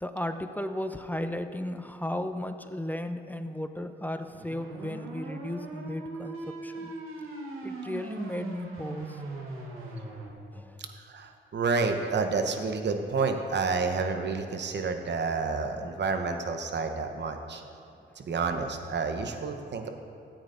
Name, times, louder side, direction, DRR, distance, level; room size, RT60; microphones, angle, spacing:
voice 1, 0.0-6.9 7.6-9.2 10.5-10.8, left 1 dB, 10° left, 9 dB, 0.6 m, -35 dB
sound 1, 4.3-10.3, right 3 dB, 80° right, 1.2 m, -40 dB
voice 2, 11.0-17.6 18.2-19.9, right 4 dB, 55° right, 6 dB, 1.0 m, -29 dB
14.0 x 8.8 x 2.6 m, 2.6 s
supercardioid pair, 50°, 21 cm